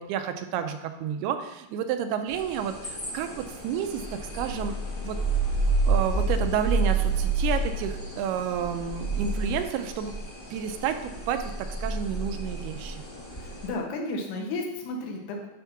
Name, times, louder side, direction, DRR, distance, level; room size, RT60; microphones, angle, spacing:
voice 1, 0.0-4.7 5.0-5.2 5.9-10.1 10.5-13.0, right 8 dB, 90° right, 7 dB, 2.7 m, -30 dB
sound 1, 2.3-13.7, right 3 dB, 60° left, 0.5 m, -29 dB
voice 2, 13.4-15.5, left 2 dB, 80° left, 1 dB, 3.4 m, -33 dB
10.5 x 4.6 x 5.9 m, 0.97 s
omnidirectional pair, 4.6 m